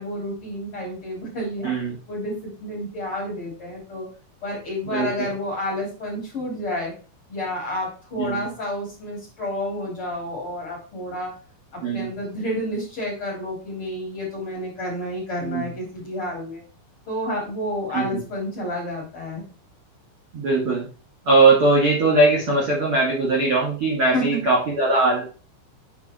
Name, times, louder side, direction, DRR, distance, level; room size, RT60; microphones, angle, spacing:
voice 1, 0.0-1.7 2.1-4.1 4.4-6.9 7.3-11.3 11.7-16.6 17.1-19.4 24.1-24.4, left 1 dB, 30° left, -3 dB, 3.4 m, -30 dB
voice 2, 1.6-2.0 4.9-5.3 8.2-8.5 11.8-12.1 15.4-15.7 17.9-18.2 20.3-20.9 21.2-25.2, right 3 dB, 40° right, -4 dB, 2.2 m, -20 dB
8.0 x 5.5 x 4.4 m, 0.36 s
omnidirectional pair, 5.7 m